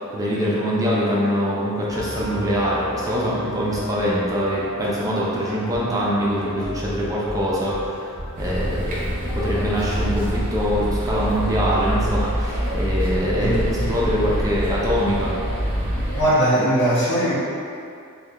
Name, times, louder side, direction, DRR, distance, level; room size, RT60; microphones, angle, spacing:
voice 1, 0.0-8.0 8.4-15.4, equal, 15° right, -6 dB, 0.4 m, -23 dB
sound 1, 1.9-9.2, equal, 25° left, 1.2 m, -35 dB
sound 2, 8.4-16.2, equal, 40° right, 0.8 m, -25 dB
voice 2, 13.4-14.0 16.1-17.3, right 1 dB, 55° left, -11 dB, 1.2 m, -20 dB
3.2 x 2.6 x 3.6 m, 2.4 s
head